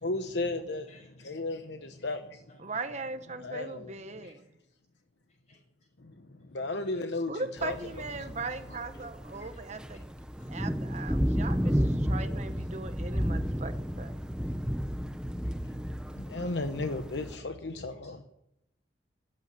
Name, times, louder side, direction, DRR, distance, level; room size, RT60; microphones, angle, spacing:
voice 1, 0.0-2.4 3.4-4.3 6.0-8.4 16.1-18.2, left 2 dB, 75° left, 1.0 m, -35 dB
voice 2, 0.9-1.3 1.8-2.0 2.3-2.6 4.1-4.3 5.5-5.6 6.8-7.0 7.6-8.0 8.7-8.9 9.4-10.0 10.4-10.5 13.4-13.5 18.0-18.2, left 2 dB, 40° left, 6.7 m, -59 dB
voice 3, 2.6-4.4 7.3-10.0 10.5-14.1, right 3 dB, 40° right, 0.9 m, -39 dB
sound 1, 7.6-17.4, equal, 5° right, 0.7 m, -32 dB
13.5 x 9.1 x 9.4 m
head